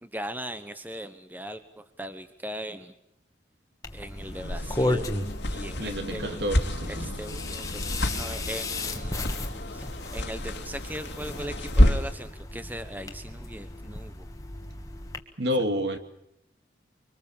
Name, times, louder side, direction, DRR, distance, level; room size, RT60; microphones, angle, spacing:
voice 1, 0.0-2.9 3.9-5.1 5.5-6.4 6.9-14.3, right 1 dB, 10° right, 10 dB, 1.0 m, -39 dB
sound 1, 3.8-15.2, left 2 dB, 20° left, 1.7 m, -35 dB
sound 2, 4.2-12.2, equal, 75° left, 2.5 m, -28 dB
voice 2, 5.8-7.1 15.4-16.0, equal, 70° right, 6 dB, 2.6 m, -29 dB
25.0 x 24.5 x 7.3 m, 0.79 s
head